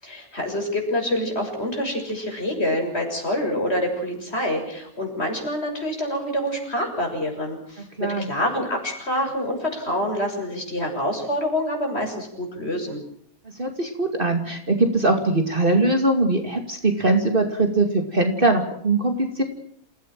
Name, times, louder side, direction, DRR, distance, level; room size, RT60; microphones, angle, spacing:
voice 1, 0.0-13.0, left 1 dB, 45° left, 2 dB, 7.1 m, -26 dB
voice 2, 13.6-19.4, right 2 dB, 35° right, 5 dB, 2.7 m, -21 dB
28.5 x 16.5 x 7.6 m, 0.66 s
omnidirectional pair, 1.5 m